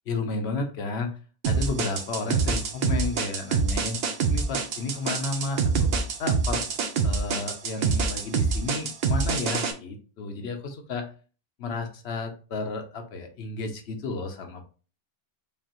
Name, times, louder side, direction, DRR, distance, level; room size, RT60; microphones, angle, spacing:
voice 1, 0.1-1.1 1.4-4.0 4.3-5.9 6.2-6.6 7.0-11.1 11.6-14.7, left 3 dB, 85° left, 5 dB, 1.1 m, -32 dB
sound 1, 1.4-9.7, right 5 dB, 75° right, 0.9 m, -25 dB
5.2 x 2.5 x 2.9 m, 0.37 s
omnidirectional pair, 1.1 m